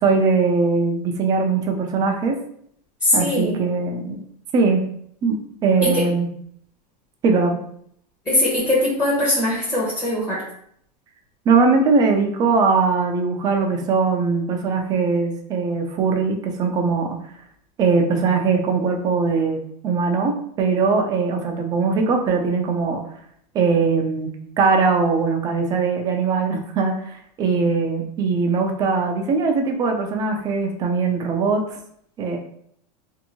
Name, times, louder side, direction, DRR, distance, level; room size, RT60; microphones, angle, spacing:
voice 1, 0.0-2.4 3.1-4.2 4.5-4.8 5.2-6.3 7.2-7.6 11.5-17.1 17.8-23.0 23.5-31.8 32.2-32.4, right 4 dB, 20° right, 3 dB, 0.3 m, -20 dB
voice 2, 3.0-3.6 5.8-6.0 8.2-10.4, left 1 dB, 15° left, -7 dB, 0.8 m, -21 dB
2.7 x 2.6 x 2.8 m, 0.67 s
supercardioid pair, 150°, 21 cm